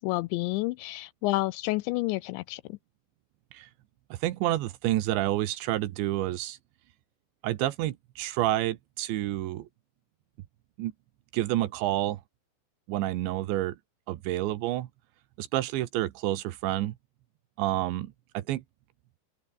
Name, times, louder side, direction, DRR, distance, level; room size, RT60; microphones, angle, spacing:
voice 1, 0.0-2.8, left 21 dB, 80° left, 2.7 m, -30 dB
voice 2, 4.1-6.6 7.4-9.7 10.8-10.9 11.3-12.2 12.9-13.8 14.1-14.9 15.4-16.9 17.6-18.6, right 15 dB, 75° right, 3.3 m, -29 dB
open air
omnidirectional pair, 5.5 m